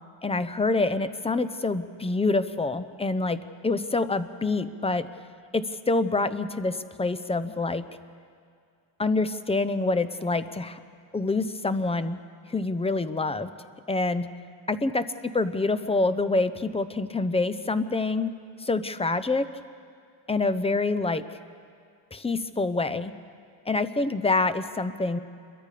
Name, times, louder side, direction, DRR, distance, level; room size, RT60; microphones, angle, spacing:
voice 1, 0.2-5.1 5.5-7.9 9.0-10.8 11.1-12.2 12.5-13.5 13.9-14.3 14.7-18.3 18.6-19.5 20.3-21.4 22.1-23.1 23.7-25.2, left 3 dB, 15° left, 12 dB, 0.7 m, -26 dB
27.5 x 22.0 x 5.0 m, 2.2 s
cardioid pair, 125°, 46 cm